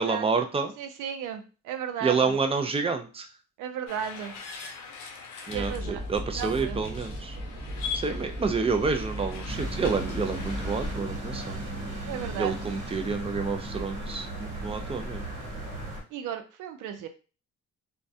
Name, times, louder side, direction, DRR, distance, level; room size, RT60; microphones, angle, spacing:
voice 1, 0.0-0.7 2.0-3.3 5.5-7.4 7.9-11.6 12.4-15.2, right 4 dB, 20° right, 6 dB, 0.4 m, -28 dB
voice 2, 0.8-2.4 3.6-4.3 5.5-6.0 6.3-6.9 12.1-12.5 16.1-17.1, right 9 dB, 85° right, 7 dB, 0.5 m, -35 dB
sound 1, 3.9-10.9, left 6 dB, 90° left, 0.5 m, -42 dB
sound 2, 5.5-11.0, equal, 40° right, 0.8 m, -36 dB
sound 3, 9.5-16.0, right 1 dB, 70° right, 1.1 m, -36 dB
2.2 x 2.1 x 2.6 m, 0.34 s
cardioid pair, 90°, 30 cm